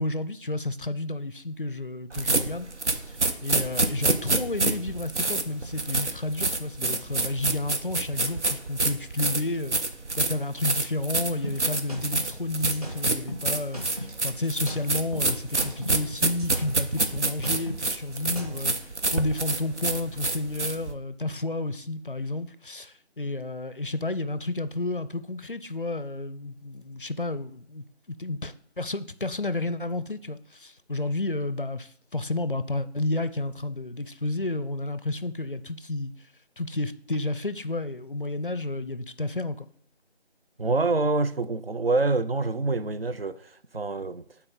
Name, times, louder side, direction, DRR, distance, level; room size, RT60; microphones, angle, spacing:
voice 1, 0.0-3.0 3.4-9.8 10.2-18.7 19.1-36.1 36.6-39.7, left 2 dB, 50° left, 0.4 m, -31 dB
sound 1, 2.1-20.9, right 3 dB, 90° right, 1.1 m, -27 dB
sound 2, 11.4-14.2 14.4-16.0 16.3-18.7, equal, 35° right, 1.8 m, -37 dB
voice 2, 40.6-44.2, right 3 dB, 60° right, 0.5 m, -26 dB
9.1 x 4.2 x 3.9 m
figure-of-eight pair, 180°, 34 cm